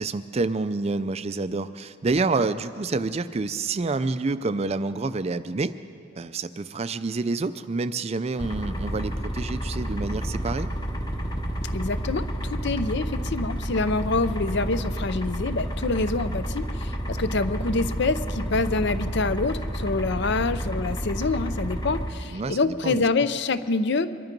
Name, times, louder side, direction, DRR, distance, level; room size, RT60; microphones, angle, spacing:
voice 1, 0.0-5.7 6.1-10.7 22.3-23.0, right 3 dB, 30° right, 13 dB, 0.4 m, -28 dB
sound 1, 8.4-22.1, equal, 20° left, 1.2 m, -30 dB
voice 2, 11.7-24.1, left 3 dB, 55° left, 13 dB, 0.6 m, -26 dB
23.0 x 12.0 x 5.3 m, 2.4 s
head